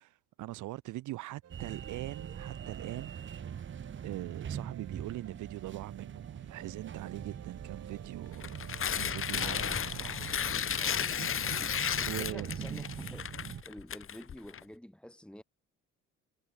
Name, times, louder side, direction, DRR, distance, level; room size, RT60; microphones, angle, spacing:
voice 1, 0.0-3.5 4.0-8.6 8.9-10.9 12.0-12.5, right 17 dB, 80° right, 1.7 m, -42 dB
sound 1, 1.4-10.0, right 10 dB, 55° right, 2.9 m, -54 dB
sound 2, 1.5-13.6, right 8 dB, 40° right, 1.2 m, -43 dB
Tearing, 8.3-14.6, left 8 dB, 45° left, 1.8 m, -34 dB
voice 2, 10.7-11.3 12.0-13.3 13.6-15.4, equal, 5° left, 5.1 m, -49 dB
cardioid pair, 90°, 30 cm